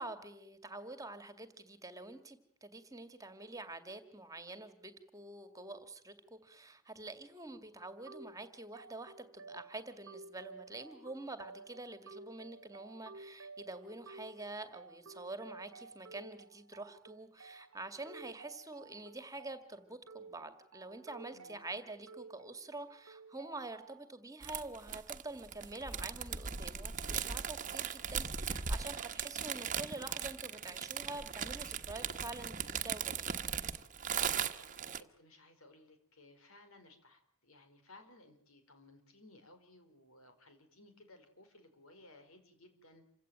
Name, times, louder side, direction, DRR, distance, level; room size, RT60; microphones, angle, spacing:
voice 1, 0.0-33.4, right 2 dB, 15° right, 10 dB, 2.1 m, -47 dB
sound 1, 8.1-24.1, right 3 dB, 80° right, 1.3 m, -54 dB
voice 2, 21.3-21.6 34.3-43.0, left 2 dB, 85° left, 7 dB, 4.8 m, -60 dB
sound 2, 24.4-35.0, right 7 dB, 35° right, 1.2 m, -38 dB
28.0 x 17.0 x 9.0 m, 0.66 s
head